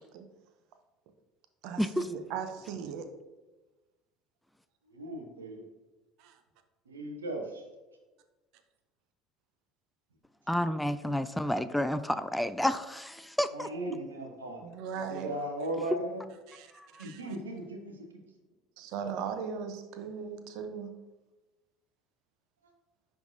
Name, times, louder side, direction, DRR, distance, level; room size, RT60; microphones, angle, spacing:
voice 1, 2.0-3.1 6.2-6.4 14.6-15.3 16.5-16.7 16.9-17.2 18.8-20.9, right 6 dB, 60° right, 0.7 m, -38 dB
voice 2, 4.9-5.6 6.8-7.7 13.5-14.7 14.9-16.2 17.0-18.2 22.6-22.7, right 1 dB, 85° right, 1.0 m, -37 dB
voice 3, 10.5-13.7 16.7-17.0, left 1 dB, 5° left, 0.3 m, -30 dB
10.5 x 3.6 x 2.7 m
hypercardioid pair, 65°, 0 cm